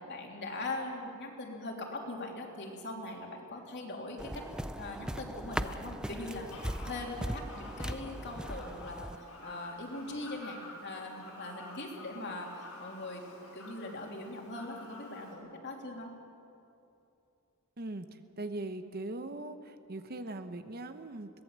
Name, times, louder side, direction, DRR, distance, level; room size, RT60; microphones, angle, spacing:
voice 1, 0.0-4.4 4.7-13.2 13.5-16.1, left 2 dB, 50° left, 0 dB, 3.2 m, -41 dB
sound 1, 4.2-9.2, equal, 5° right, 0.4 m, -39 dB
Fowl, 6.5-15.3, left 2 dB, 90° left, 6.8 m, -50 dB
voice 2, 17.8-21.3, right 2 dB, 45° right, 9 dB, 1.0 m, -40 dB
22.5 x 18.0 x 7.5 m, 2.7 s
head